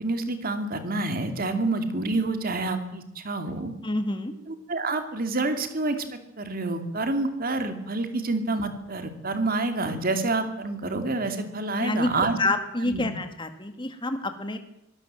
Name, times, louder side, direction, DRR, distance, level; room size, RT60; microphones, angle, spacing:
voice 1, 0.0-3.7 4.5-12.4 12.8-13.1, right 2 dB, 45° right, 8 dB, 2.7 m, -28 dB
voice 2, 3.8-4.3 11.7-12.1 12.4-14.6, left 2 dB, 25° left, 7 dB, 1.8 m, -28 dB
24.0 x 18.0 x 7.7 m, 0.82 s
head